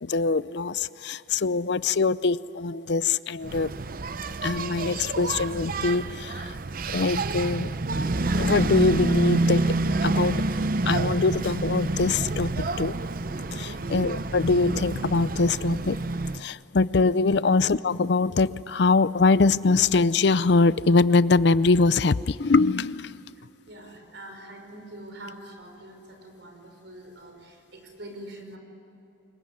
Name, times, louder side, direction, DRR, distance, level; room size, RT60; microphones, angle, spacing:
voice 1, 0.0-3.7 4.4-6.6 6.9-7.7 8.3-9.7 10.0-10.4 10.9-12.9 13.5-16.0 16.3-23.2, left 3 dB, 60° left, 17 dB, 0.5 m, -23 dB
Engine, 3.4-16.4, right 2 dB, 45° right, 0.7 m, -28 dB
voice 2, 23.4-28.6, right 1 dB, 65° right, 4 dB, 5.1 m, -44 dB
25.5 x 22.5 x 9.6 m, 2.9 s
head